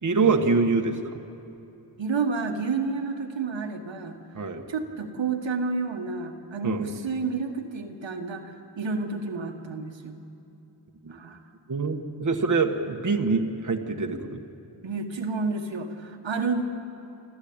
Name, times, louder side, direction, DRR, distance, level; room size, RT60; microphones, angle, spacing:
voice 1, 0.0-1.2 4.3-4.6 6.6-6.9 11.0-11.2 11.7-14.4, right 4 dB, 45° right, 3 dB, 1.4 m, -25 dB
voice 2, 2.0-4.2 4.7-10.2 11.1-11.4 14.8-16.6, right 4 dB, 90° right, 3 dB, 1.7 m, -30 dB
27.0 x 13.5 x 8.8 m, 2.9 s
wide cardioid pair, 95°, 44 cm